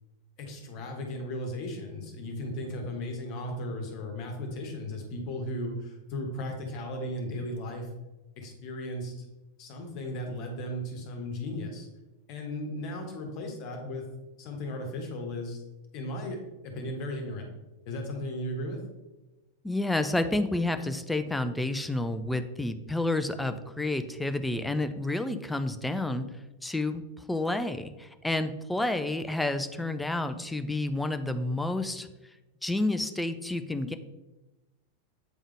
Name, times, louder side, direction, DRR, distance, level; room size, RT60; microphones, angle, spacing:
voice 1, 0.4-7.9 8.4-9.2 9.6-11.9 12.3-14.1 14.4-15.6 15.9-16.4 16.6-17.5 17.8-18.8, left 1 dB, 40° left, 3 dB, 1.3 m, -36 dB
voice 2, 19.6-26.3 26.6-27.0 27.3-32.1 32.6-34.0, left 2 dB, 5° left, 9 dB, 0.4 m, -30 dB
8.2 x 3.6 x 3.5 m, 1.1 s
figure-of-eight pair, 90°, 0 cm